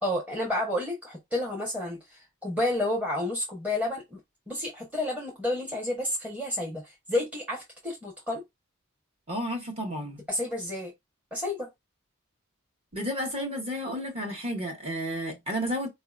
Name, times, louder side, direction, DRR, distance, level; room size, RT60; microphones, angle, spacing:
voice 1, 0.0-4.2 4.5-8.4 10.3-10.9 11.3-11.7, left 1 dB, 5° right, 1.0 m, -30 dB
voice 2, 9.3-10.2 12.9-15.9, equal, 30° right, 1.3 m, -32 dB
4.3 x 2.7 x 2.4 m
head